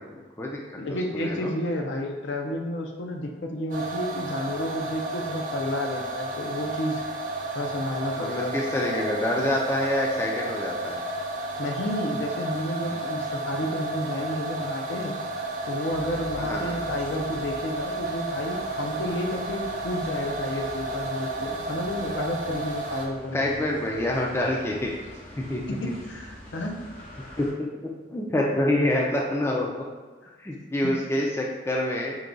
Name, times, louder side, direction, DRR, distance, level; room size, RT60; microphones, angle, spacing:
voice 1, 0.1-0.6 0.9-1.5 8.2-11.0 16.4-16.8 23.3-24.9 25.3-25.9 27.4-27.5 28.1-29.7 30.4-32.2, left 1 dB, 15° left, -2 dB, 0.3 m, -27 dB
voice 2, 0.8-7.0 7.5-8.8 11.6-15.2 15.7-23.7 25.7-26.8, left 1 dB, 70° left, 2 dB, 0.5 m, -31 dB
sound 1, 3.7-23.1, right 2 dB, 45° right, 0.5 m, -32 dB
sound 2, 15.9-27.5, equal, 45° left, 0.9 m, -45 dB
4.6 x 2.3 x 3.8 m, 1.3 s
head